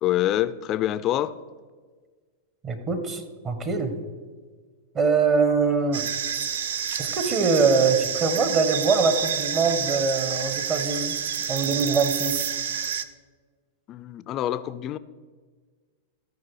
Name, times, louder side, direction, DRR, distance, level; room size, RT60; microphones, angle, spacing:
voice 1, 0.0-1.4 13.9-15.0, left 13 dB, 35° left, 0.4 m, -26 dB
voice 2, 2.6-3.9 4.9-6.1 7.0-11.1 11.5-12.5, right 4 dB, 30° right, 1.2 m, -23 dB
sound 1, 5.9-13.0, right 8 dB, 70° right, 0.4 m, -29 dB
13.5 x 4.8 x 4.8 m
hypercardioid pair, 105°, 0 cm